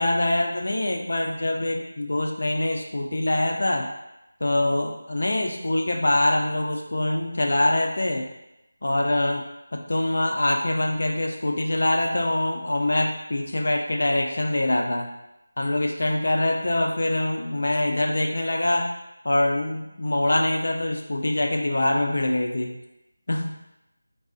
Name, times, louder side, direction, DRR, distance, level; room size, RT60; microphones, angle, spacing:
voice 1, 0.0-3.9 4.4-8.2 8.8-9.4 9.7-15.1 15.6-18.9 19.2-22.7 23.3-23.7, left 1 dB, 65° left, 1 dB, 0.4 m, -24 dB
2.4 x 2.0 x 2.5 m, 0.91 s
figure-of-eight pair, 175°, 0 cm